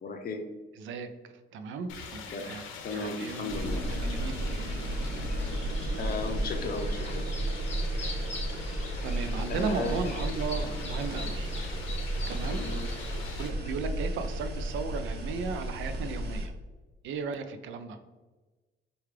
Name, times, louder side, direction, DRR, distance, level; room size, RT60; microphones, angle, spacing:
voice 1, 0.0-0.4 2.3-2.5 2.8-3.8 6.0-7.3 9.5-10.0 12.5-12.8, left 3 dB, 50° left, 5 dB, 0.6 m, -35 dB
voice 2, 0.7-2.6 2.9-4.4 9.0-11.5 12.3-12.6 13.4-16.5 17.0-18.0, right 4 dB, 80° right, 9 dB, 0.4 m, -36 dB
sound 1, 1.9-13.5, left 5 dB, 90° left, 0.6 m, -45 dB
sound 2, 3.5-16.5, right 1 dB, 55° right, 0.8 m, -33 dB
sound 3, 4.5-13.7, left 2 dB, 35° left, 1.1 m, -44 dB
4.6 x 2.3 x 3.2 m, 1.2 s
cardioid pair, 90°, 20 cm